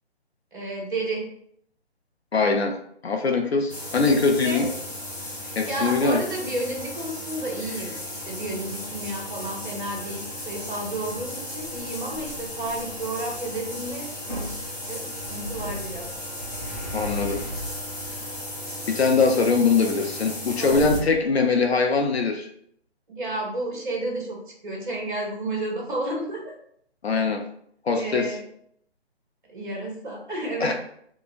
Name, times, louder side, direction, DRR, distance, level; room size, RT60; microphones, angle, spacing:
voice 1, 0.5-1.3 4.4-4.7 5.4-16.1 20.6-21.1 23.1-26.5 27.1-27.3 27.9-28.4 29.5-30.7, right 1 dB, 50° right, 0 dB, 1.0 m, -32 dB
voice 2, 2.3-2.8 3.0-4.7 5.6-6.2 16.9-17.4 18.9-22.5 27.0-27.4 27.8-28.3 30.6-30.7, left 4 dB, 70° left, 3 dB, 0.5 m, -22 dB
sound 1, 3.7-21.0, left 1 dB, 20° left, 0.5 m, -35 dB
3.7 x 2.1 x 2.5 m, 0.68 s
figure-of-eight pair, 145°, 33 cm